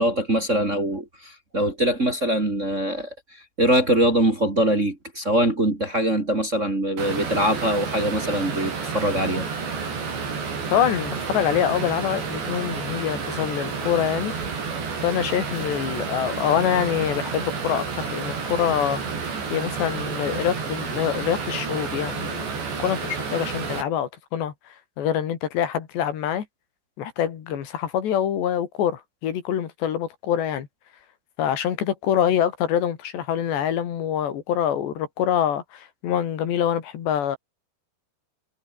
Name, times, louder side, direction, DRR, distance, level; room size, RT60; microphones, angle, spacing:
voice 1, 0.0-3.1 3.6-9.5, right 1 dB, 20° right, 2.9 m, -23 dB
sound 1, 7.0-23.8, right 5 dB, 90° right, 8.7 m, -30 dB
voice 2, 10.7-14.3 15.0-22.5 22.8-26.5 27.0-30.7 31.4-37.4, left 9 dB, 80° left, 4.8 m, -25 dB
omnidirectional pair, 4.9 m